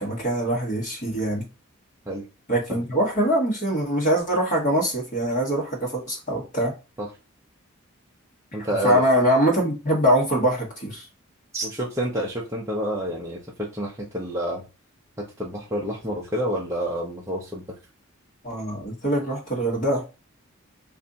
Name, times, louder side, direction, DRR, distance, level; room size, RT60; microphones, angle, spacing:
voice 1, 0.0-1.5 2.5-6.7 8.8-11.1 18.4-20.1, right 1 dB, 35° left, -2 dB, 1.5 m, -23 dB
voice 2, 8.5-9.0 11.5-14.6 15.2-17.6, equal, 15° right, -4 dB, 0.6 m, -28 dB
3.2 x 2.6 x 3.9 m, 0.30 s
head